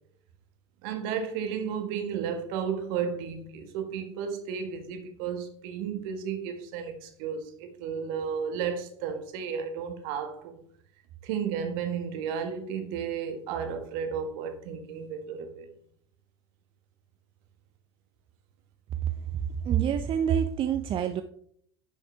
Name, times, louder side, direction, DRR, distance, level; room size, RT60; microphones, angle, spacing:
voice 1, 0.8-10.6 11.2-15.7, right 7 dB, 60° right, 1.5 m, -33 dB
voice 2, 19.6-21.2, right 9 dB, 35° right, 0.6 m, -26 dB
10.5 x 6.4 x 3.4 m
figure-of-eight pair, 70°, 14 cm